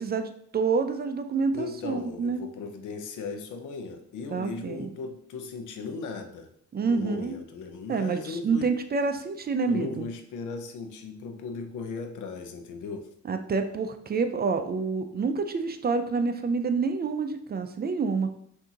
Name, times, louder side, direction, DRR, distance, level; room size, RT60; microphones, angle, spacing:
voice 1, 0.0-2.4 4.3-4.9 6.7-7.3 7.9-10.1 13.2-18.3, right 4 dB, 30° right, 7 dB, 0.4 m, -28 dB
voice 2, 1.5-6.5 6.8-8.7 9.7-13.1, left 4 dB, 80° left, 6 dB, 0.7 m, -37 dB
6.0 x 2.8 x 2.8 m, 0.66 s
cardioid pair, 90°, 30 cm